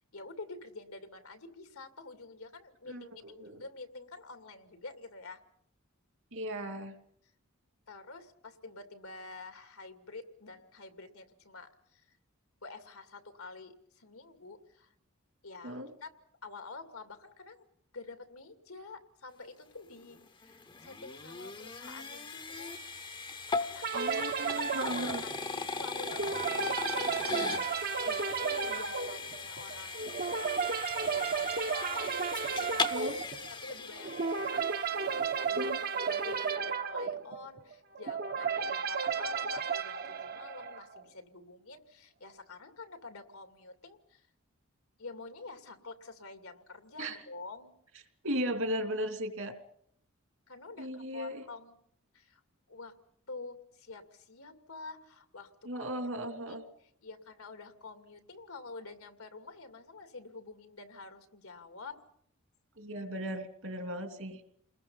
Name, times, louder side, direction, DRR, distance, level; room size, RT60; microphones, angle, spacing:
voice 1, 0.1-5.4 7.9-12.0 12.6-14.9 15.4-16.1 16.4-17.7 17.9-22.8 23.6-23.8 25.1-26.2 26.5-30.5 31.0-32.1 32.4-33.3 33.6-44.3 45.0-47.7 50.5-51.7 52.1-52.4 52.7-52.9 53.3-55.9 56.5-56.6 57.0-62.0, left 3 dB, 85° left, 7 dB, 2.6 m, -48 dB
voice 2, 2.9-3.6 6.3-6.9 15.6-15.9 23.9-25.2 32.9-33.1 35.6-35.8 47.0-47.2 48.2-49.5 50.8-51.4 55.6-56.6 62.8-64.4, equal, 70° right, 6 dB, 3.0 m, -36 dB
sound 1, 20.0-35.2, left 4 dB, 25° left, 0.9 m, -39 dB
sound 2, 23.8-41.0, right 5 dB, 45° right, 1.0 m, -33 dB
29.5 x 21.0 x 5.6 m, 0.68 s
head